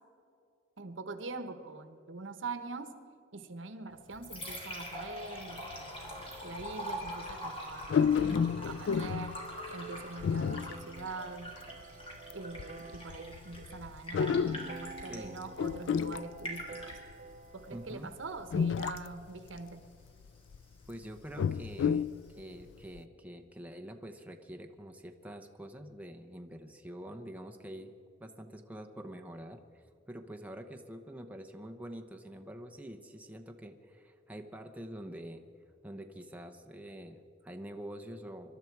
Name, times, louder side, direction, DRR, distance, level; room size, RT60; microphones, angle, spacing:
voice 1, 0.8-2.9 3.3-9.4 9.7-11.6 12.3-17.0 17.5-19.8, right 3 dB, 75° right, 9 dB, 1.1 m, -44 dB
Liquid, 3.9-22.9, equal, 30° left, 3.3 m, -46 dB
sound 1, 5.7-5.8 6.6-6.7 7.1-7.3 7.8-9.5 10.2-11.0 11.5-11.6 12.3-12.4 12.6-15.3 15.6-17.1 17.9-18.0 18.5-19.2 19.6-19.7 20.3-20.6 21.2-22.2 22.6-22.7 23.0-23.1, left 6 dB, 65° left, 0.3 m, -30 dB
sound 2, 8.6-18.0, right 4 dB, 40° right, 0.5 m, -50 dB
voice 2, 15.1-15.4 17.7-18.1 20.9-27.9 28.2-35.4 35.8-38.6, equal, 10° right, 4 dB, 0.8 m, -46 dB
25.0 x 12.0 x 4.7 m, 2.5 s
head